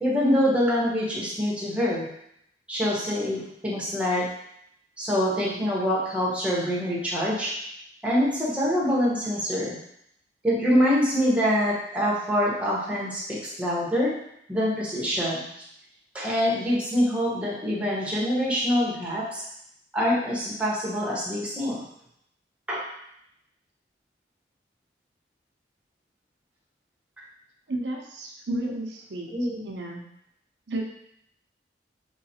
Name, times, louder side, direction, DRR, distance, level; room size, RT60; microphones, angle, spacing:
voice 1, 0.0-2.1 2.7-4.3 5.0-7.5 8.0-9.8 10.4-14.1 14.5-15.4 16.1-19.4 19.9-21.8 22.7-22.8 28.5-28.6 29.3-29.6, equal, 5° right, -6 dB, 1.0 m, -25 dB
voice 2, 27.7-29.3 29.6-30.0 30.7-30.8, right 2 dB, 80° right, 0 dB, 0.7 m, -32 dB
3.7 x 3.1 x 2.8 m, 0.73 s
head